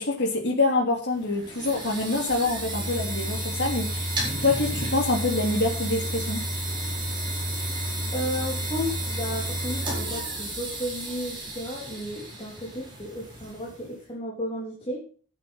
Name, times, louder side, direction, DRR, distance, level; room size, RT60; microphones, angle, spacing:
voice 1, 0.0-4.1 4.4-6.4, left 2 dB, 55° left, 0 dB, 2.9 m, -26 dB
sound 1, 1.1-13.9, right 1 dB, 20° right, 4.5 m, -31 dB
voice 2, 8.1-15.0, equal, 25° left, -4 dB, 3.6 m, -33 dB
10.5 x 9.2 x 5.6 m, 0.41 s
head